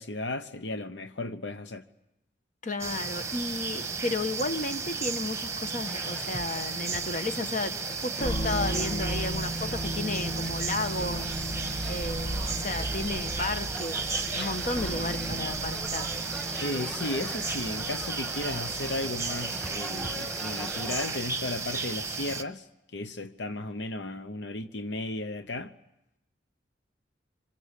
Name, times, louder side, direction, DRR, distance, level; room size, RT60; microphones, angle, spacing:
voice 1, 0.0-1.8 16.6-22.7 22.9-25.7, left 2 dB, 75° left, 1.0 m, -35 dB
voice 2, 2.6-11.3 11.8-16.1, left 2 dB, 45° left, 1.4 m, -33 dB
sound 1, 2.8-22.4, right 4 dB, 15° right, 1.3 m, -34 dB
sound 2, 5.9-21.2, equal, ahead, 2.5 m, -43 dB
sound 3, 8.2-19.6, equal, 30° left, 2.0 m, -36 dB
27.0 x 26.0 x 8.4 m
head